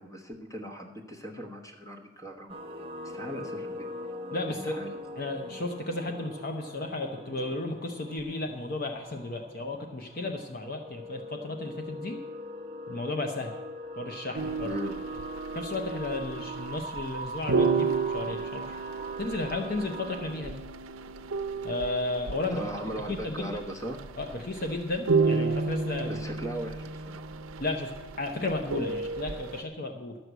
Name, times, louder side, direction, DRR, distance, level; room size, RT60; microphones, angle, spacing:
voice 1, 0.0-2.5 3.0-3.9 4.5-4.9 14.6-14.9 22.5-24.0 26.1-27.2, right 1 dB, 15° left, 3 dB, 1.2 m, -38 dB
sound 1, 2.5-20.4, equal, 25° right, 0.7 m, -42 dB
voice 2, 4.3-4.8 5.2-12.2 12.9-13.6 14.0-14.8 15.5-18.7 19.2-20.6 21.6-22.6 23.1-23.6 24.2-26.2 27.6-27.9 28.2-30.2, left 2 dB, 45° left, 4 dB, 0.7 m, -33 dB
sound 2, 14.3-29.6, right 4 dB, 75° right, 0.6 m, -32 dB
12.0 x 6.1 x 8.0 m, 1.2 s
head